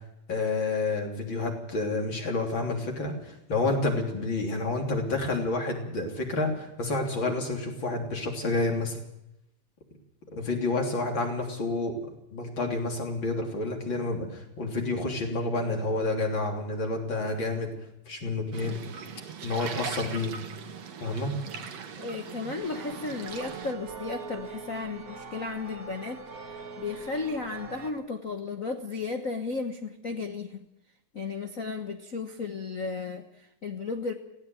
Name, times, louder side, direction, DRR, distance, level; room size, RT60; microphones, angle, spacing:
voice 1, 0.3-9.0 10.3-12.0 12.3-17.7 18.1-18.8 19.4-20.3 21.0-21.3, left 2 dB, 40° left, 2 dB, 3.9 m, -29 dB
sound 1, 18.5-23.7, right 7 dB, 60° right, 2.6 m, -40 dB
voice 2, 22.0-26.2 26.8-30.6 31.1-34.1, left 4 dB, 65° left, 6 dB, 0.8 m, -34 dB
sound 2, 22.6-27.9, right 4 dB, 35° right, 1.8 m, -43 dB
17.5 x 16.5 x 9.3 m, 0.85 s
omnidirectional pair, 3.5 m